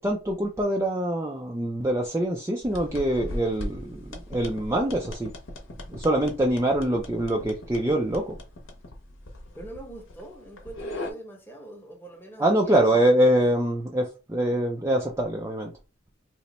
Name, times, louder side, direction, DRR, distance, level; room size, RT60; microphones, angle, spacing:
voice 1, 0.0-5.3 5.9-8.3 12.4-15.7, right 1 dB, 15° right, 0.3 m, -24 dB
sound 1, 2.6-11.1, left 1 dB, 65° left, 0.8 m, -39 dB
voice 2, 9.5-13.2, right 1 dB, 10° left, 0.7 m, -43 dB
2.9 x 2.1 x 4.0 m
head